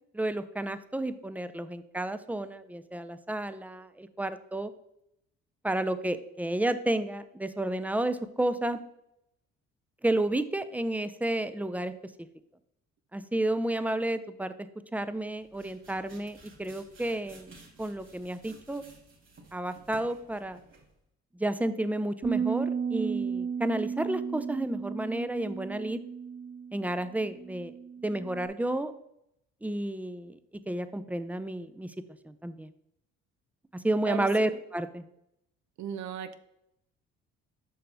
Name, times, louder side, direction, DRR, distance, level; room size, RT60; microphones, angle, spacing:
voice 1, 0.1-4.7 5.6-8.8 10.0-12.1 13.1-17.5 17.8-18.9 19.5-20.6 21.4-26.0 26.7-27.7 28.0-28.9 29.6-30.4 30.7-31.9 32.3-32.7 33.7-35.0, right 1 dB, 5° right, 12 dB, 0.5 m, -31 dB
sound 1, 15.2-21.0, right 3 dB, 45° right, 2.8 m, -54 dB
sound 2, 22.2-28.5, right 6 dB, 25° right, 1.3 m, -34 dB
voice 2, 34.0-34.6 35.8-36.3, right 9 dB, 70° right, 11 dB, 0.7 m, -36 dB
7.6 x 5.6 x 3.4 m, 0.79 s
supercardioid pair, 75°, 30 cm